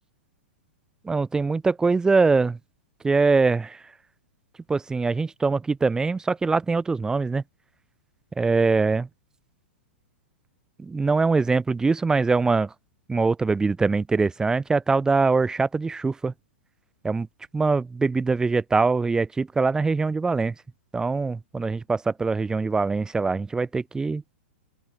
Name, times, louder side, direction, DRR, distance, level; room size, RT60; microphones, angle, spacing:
voice 1, 1.0-2.6 3.0-3.8 4.7-7.4 8.4-9.1 10.8-12.7 13.1-16.3 17.0-17.3 17.5-20.5 20.9-24.2, right 4 dB, 10° right, 0.8 m, -23 dB
open air
hypercardioid pair, 120°, 7 cm